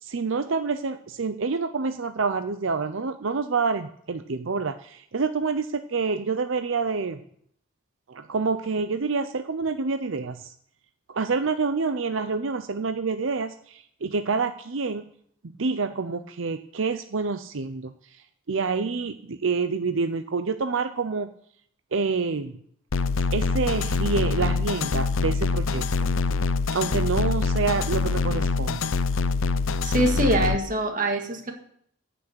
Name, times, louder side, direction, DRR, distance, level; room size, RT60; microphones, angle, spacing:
voice 1, 0.0-7.2 8.1-10.5 11.1-15.1 15.6-21.3 21.9-22.5 23.3-26.1 26.7-28.9, right 4 dB, 75° right, 9 dB, 0.6 m, -27 dB
sound 1, 22.9-30.6, left 4 dB, 85° left, 0.6 m, -25 dB
voice 2, 29.8-31.5, right 1 dB, 40° right, 3 dB, 1.9 m, -24 dB
15.0 x 6.2 x 8.0 m, 0.67 s
head